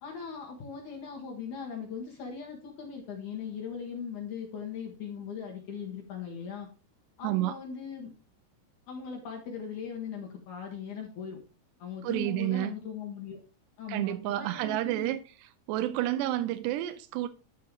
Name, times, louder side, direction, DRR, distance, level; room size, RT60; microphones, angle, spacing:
voice 1, 0.0-6.7 7.2-8.1 8.9-11.4 11.8-13.4 13.8-15.1, left 6 dB, 55° left, 2.7 m, -39 dB
voice 2, 7.2-7.5 12.0-12.7 13.9-15.2 15.7-17.3, right 15 dB, 90° right, 2.8 m, -30 dB
11.0 x 4.6 x 4.8 m
omnidirectional pair, 4.9 m